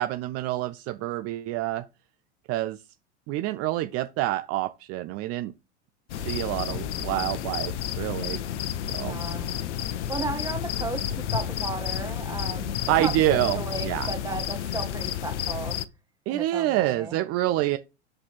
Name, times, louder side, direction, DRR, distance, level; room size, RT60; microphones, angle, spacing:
voice 1, 0.0-1.8 2.5-2.8 3.3-5.5 6.2-8.4 8.9-9.2 12.9-14.1 16.3-17.8, right 15 dB, 45° right, 0.6 m, -27 dB
sound 1, 6.1-15.9, left 10 dB, 75° left, 0.8 m, -31 dB
voice 2, 8.9-9.5 10.1-15.8 16.3-17.2, right 3 dB, 10° right, 1.5 m, -35 dB
7.5 x 4.2 x 4.5 m
hypercardioid pair, 100°, 35 cm